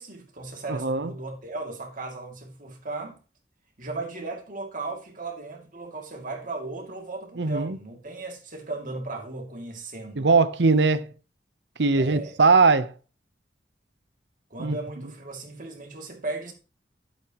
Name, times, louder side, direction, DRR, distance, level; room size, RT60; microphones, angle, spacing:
voice 1, 0.0-3.2 3.8-10.3 11.9-12.3 14.5-16.5, right 2 dB, 50° right, 2.5 m, -36 dB
voice 2, 0.7-1.1 7.4-7.8 10.2-11.1 11.8-12.9 14.6-14.8, right 4 dB, 75° right, 0.8 m, -20 dB
11.5 x 8.7 x 3.0 m
head